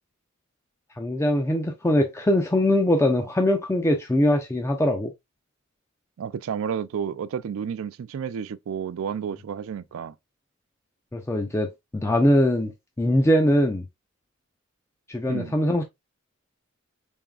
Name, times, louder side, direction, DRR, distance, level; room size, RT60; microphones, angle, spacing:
voice 1, 1.0-5.1 11.1-12.7 13.0-13.8 15.1-15.8, left 1 dB, 15° left, 0.4 m, -22 dB
voice 2, 6.2-10.1 15.3-15.5, right 7 dB, 75° right, 0.3 m, -31 dB
3.9 x 3.5 x 2.3 m
head